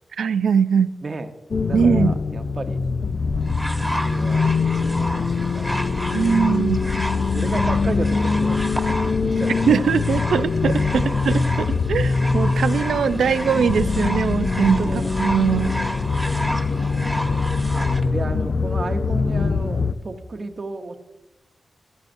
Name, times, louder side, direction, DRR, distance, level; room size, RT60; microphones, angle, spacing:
voice 1, 0.2-0.9 1.7-2.1 6.1-6.8 9.7-15.7, right 6 dB, 90° right, 13 dB, 0.4 m, -21 dB
sound 1, 1.5-19.9, left 4 dB, 55° left, 0.5 m, -23 dB
voice 2, 1.7-2.8 3.7-4.5 5.1-6.5 7.3-9.9 10.2-10.3 10.9-11.2 14.8-15.1 15.5-16.6 17.2-21.0, right 3 dB, 45° right, 6 dB, 0.9 m, -34 dB
sound 2, 3.4-18.0 18.9-19.0, equal, 5° right, 1.2 m, -31 dB
16.0 x 13.5 x 2.6 m, 1.0 s
cardioid pair, 80°, 0 cm